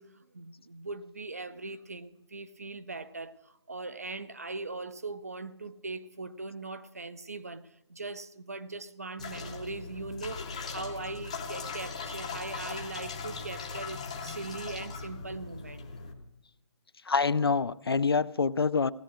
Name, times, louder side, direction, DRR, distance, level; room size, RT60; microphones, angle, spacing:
voice 1, 0.0-15.9, right 3 dB, 30° right, 0.5 m, -40 dB
sound 1, 9.2-16.1, left 4 dB, 15° left, 0.7 m, -39 dB
voice 2, 17.1-18.9, left 5 dB, 55° left, 0.4 m, -26 dB
16.5 x 10.0 x 6.2 m
hypercardioid pair, 175°, 16 cm